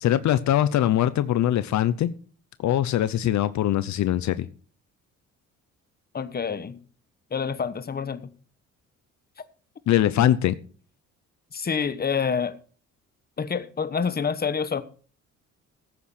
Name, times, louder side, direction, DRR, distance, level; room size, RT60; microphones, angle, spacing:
voice 1, 0.0-2.1 2.6-4.5 9.9-10.5, left 12 dB, 70° left, 0.7 m, -22 dB
voice 2, 6.1-6.8 7.3-8.3 11.5-12.6 13.4-14.8, left 6 dB, 30° left, 1.1 m, -27 dB
15.0 x 8.6 x 4.3 m
cardioid pair, 90°, 30 cm